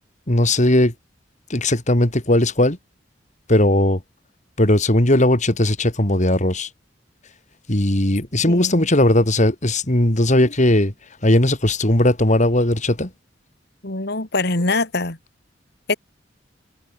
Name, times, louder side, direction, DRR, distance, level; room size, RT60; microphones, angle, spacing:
voice 1, 0.3-0.9 1.5-2.8 3.5-4.0 4.6-6.7 7.7-10.9 11.2-13.1, left 1 dB, 40° left, 3.2 m, -17 dB
voice 2, 8.4-8.8 13.8-15.2 15.9-16.0, left 3 dB, 60° left, 3.0 m, -23 dB
head